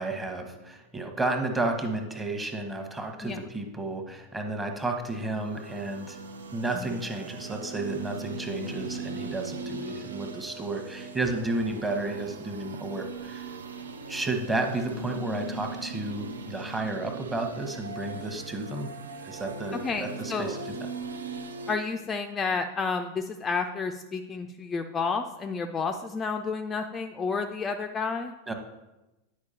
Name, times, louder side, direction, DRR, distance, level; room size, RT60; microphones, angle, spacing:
voice 1, 0.0-6.2 6.5-13.5 14.1-18.9 19.2-20.6 28.5-28.6, right 2 dB, 10° right, 4 dB, 0.9 m, -32 dB
sound 1, 4.9-21.7, right 3 dB, 70° right, 0.5 m, -39 dB
voice 2, 19.7-20.6 21.7-28.3, left 4 dB, 20° left, 6 dB, 0.3 m, -31 dB
9.9 x 4.6 x 2.8 m, 1.0 s
figure-of-eight pair, 90°, 0 cm